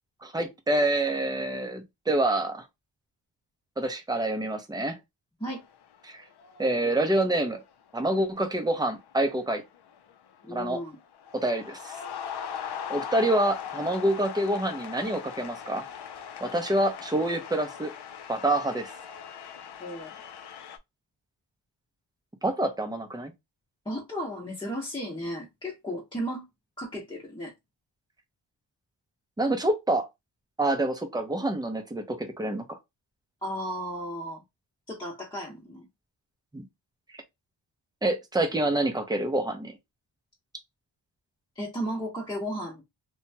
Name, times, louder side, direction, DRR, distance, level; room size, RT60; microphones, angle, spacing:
voice 1, 0.2-2.6 3.8-5.0 6.0-6.2 6.6-7.6 7.9-9.6 10.5-10.8 11.3-12.0 12.9-15.9 16.4-17.9 18.3-18.9 22.4-23.3 29.4-30.1 30.6-32.8 36.5-36.6 38.0-39.8, right 1 dB, 10° right, 0.6 m, -27 dB
sound 1, 5.5-6.0 6.3-6.8 7.7-7.9 8.3-10.5 10.9-20.8, left 8 dB, 60° left, 0.5 m, -40 dB
voice 2, 10.4-11.0 19.8-20.2 23.8-26.4 26.8-27.5 33.4-34.4 34.9-35.9 41.5-42.8, equal, 10° left, 0.9 m, -34 dB
2.8 x 2.2 x 2.7 m
wide cardioid pair, 120°, 46 cm